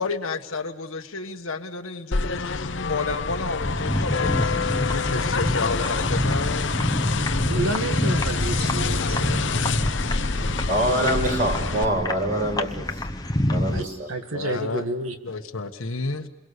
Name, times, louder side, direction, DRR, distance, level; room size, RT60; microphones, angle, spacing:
voice 1, 0.0-6.7 14.3-14.8 15.2-16.3, left 3 dB, 80° left, 4 dB, 1.4 m, -31 dB
sound 1, 2.1-11.8, left 4 dB, 60° left, 0.9 m, -27 dB
sound 2, 3.6-13.8, left 1 dB, 20° left, 1.0 m, -27 dB
voice 2, 7.5-9.5 13.7-13.8 14.1-15.2, right 2 dB, 80° right, 6 dB, 2.1 m, -30 dB
voice 3, 10.7-12.9 13.5-14.1, right 1 dB, 40° right, 3 dB, 5.4 m, -24 dB
29.5 x 22.5 x 6.7 m, 0.99 s
head